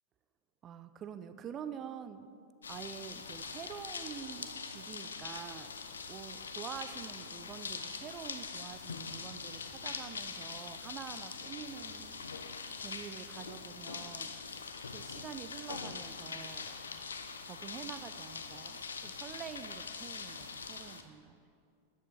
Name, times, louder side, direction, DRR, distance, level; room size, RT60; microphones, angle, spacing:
voice 1, 0.6-2.3 2.7-5.7 6.1-12.1 12.8-16.7 17.4-21.4, right 8 dB, 30° right, 11 dB, 0.4 m, -47 dB
sound 1, 2.6-21.0, left 5 dB, 70° left, 0.5 m, -43 dB
13.5 x 8.4 x 3.2 m, 2.3 s
figure-of-eight pair, 90°, 0 cm